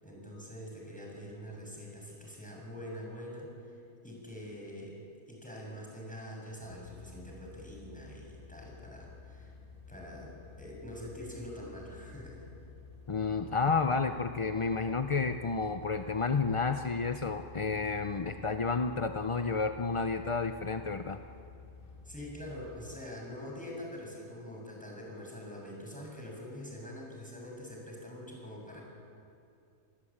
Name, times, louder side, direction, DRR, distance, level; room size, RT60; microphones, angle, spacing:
voice 1, 0.0-3.8 4.0-5.0 5.3-9.5 9.9-10.3 10.6-12.4 22.1-28.8, equal, 5° left, -2 dB, 7.1 m, -44 dB
sound 1, 6.6-23.0, left 4 dB, 75° left, 3.2 m, -51 dB
voice 2, 13.1-21.2, left 4 dB, 35° left, 7 dB, 0.5 m, -31 dB
27.0 x 19.0 x 8.8 m, 2.5 s
omnidirectional pair, 1.5 m